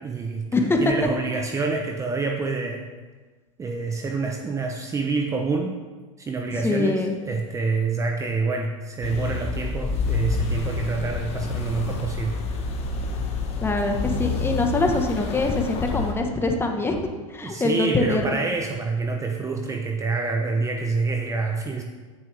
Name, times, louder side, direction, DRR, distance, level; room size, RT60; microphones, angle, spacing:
voice 1, 0.0-2.9 3.6-5.7 6.2-12.4 17.4-21.8, right 4 dB, 20° right, 3 dB, 0.9 m, -27 dB
voice 2, 6.6-7.1 13.6-17.0 17.3-18.4, left 2 dB, 15° left, 3 dB, 1.3 m, -23 dB
sound 1, 9.0-16.1, left 3 dB, 35° left, 1.6 m, -28 dB
15.0 x 7.1 x 3.5 m, 1.3 s
hypercardioid pair, 115°, 17 cm